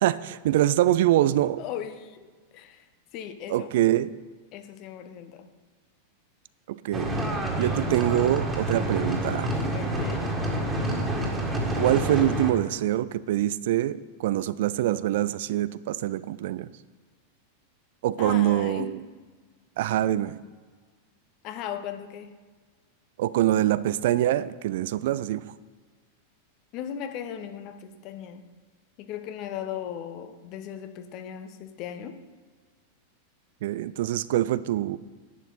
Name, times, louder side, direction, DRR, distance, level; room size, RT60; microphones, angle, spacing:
voice 1, 0.0-1.6 3.5-4.1 6.7-7.2 7.6-9.5 11.8-16.7 18.0-19.0 19.8-20.4 23.2-25.4 33.6-35.0, right 13 dB, 55° right, 16 dB, 0.3 m, -24 dB
voice 2, 1.6-2.9 3.1-3.7 4.5-5.5 9.7-10.3 18.2-19.0 21.4-22.3 26.7-28.4 29.0-32.2, left 9 dB, 40° left, 9 dB, 0.9 m, -37 dB
sound 1, 6.9-12.5, right 1 dB, 10° right, 1.9 m, -28 dB
11.0 x 9.1 x 4.0 m, 1.5 s
figure-of-eight pair, 90°, 0 cm